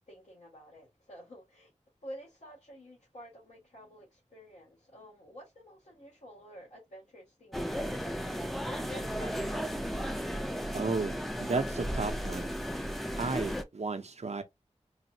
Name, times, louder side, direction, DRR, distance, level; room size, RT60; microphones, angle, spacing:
voice 1, 0.0-1.7 2.0-9.7, equal, 70° left, 1.7 m, -50 dB
sound 1, 7.5-13.6, equal, ahead, 0.6 m, -34 dB
voice 2, 10.7-12.5 13.2-14.4, right 3 dB, 65° right, 0.7 m, -33 dB
3.9 x 2.1 x 2.7 m
wide cardioid pair, 50°, 12 cm